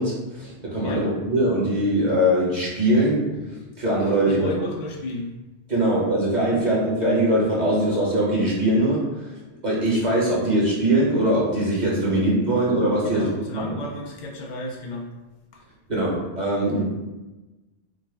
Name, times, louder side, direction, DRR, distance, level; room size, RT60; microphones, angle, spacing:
voice 1, 0.0-3.4 3.8-4.5 5.7-9.3 9.6-13.7 15.9-16.8, right 1 dB, 40° right, -5 dB, 1.1 m, -22 dB
voice 2, 4.3-5.3 6.5-6.6 12.1-12.2 13.0-15.1 15.5-15.6 15.9-16.0, left 1 dB, 60° left, 0 dB, 0.5 m, -34 dB
4.9 x 2.1 x 3.3 m, 1.1 s
omnidirectional pair, 1.2 m